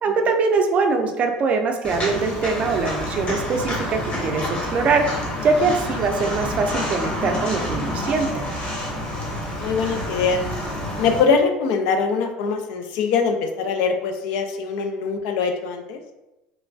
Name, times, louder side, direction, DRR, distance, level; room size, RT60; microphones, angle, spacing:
voice 1, 0.0-5.0 5.4-8.4, right 4 dB, 45° right, 5 dB, 0.4 m, -22 dB
Walk footsteps, 1.8-11.2, left 1 dB, 45° left, 1.1 m, -28 dB
voice 2, 9.6-10.4 11.0-16.0, left 5 dB, 75° left, 5 dB, 0.4 m, -22 dB
3.1 x 2.2 x 2.5 m, 0.96 s
supercardioid pair, 100°, 3 cm